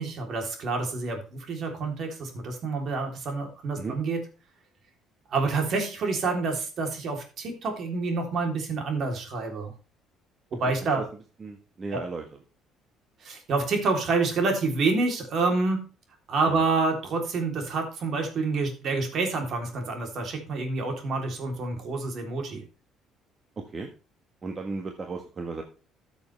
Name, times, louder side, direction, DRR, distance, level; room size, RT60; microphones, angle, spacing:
voice 1, 0.0-4.2 5.3-9.7 10.6-11.0 11.9-12.0 13.2-15.8 16.3-22.6, right 3 dB, 55° right, 3 dB, 3.4 m, -28 dB
voice 2, 11.4-12.4 16.5-16.6 23.6-23.9 24.4-25.6, right 4 dB, 35° right, 4 dB, 1.5 m, -35 dB
13.5 x 7.1 x 3.4 m, 0.34 s
supercardioid pair, 85°, 0 cm